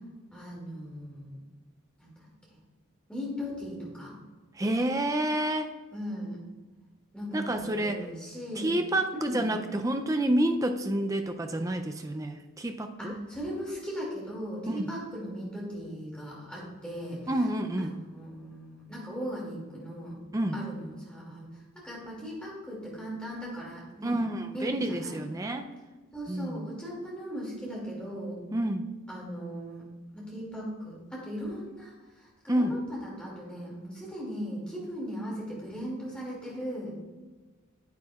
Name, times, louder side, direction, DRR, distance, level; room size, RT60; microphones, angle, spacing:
voice 1, 0.3-1.4 2.0-2.6 3.1-4.2 5.9-6.4 7.1-8.7 9.1-9.5 13.0-17.3 17.8-20.2 20.5-24.2 24.5-25.2 26.1-28.4 29.1-29.8 30.1-36.9, equal, 5° left, -5 dB, 2.3 m, -38 dB
voice 2, 4.6-5.7 7.3-8.0 8.6-13.1 14.7-14.9 17.3-17.9 20.3-20.6 24.0-25.7 26.3-26.7 28.5-28.9 32.5-32.8, right 1 dB, 15° right, 6 dB, 0.4 m, -29 dB
9.3 x 8.6 x 2.4 m, 1.3 s
head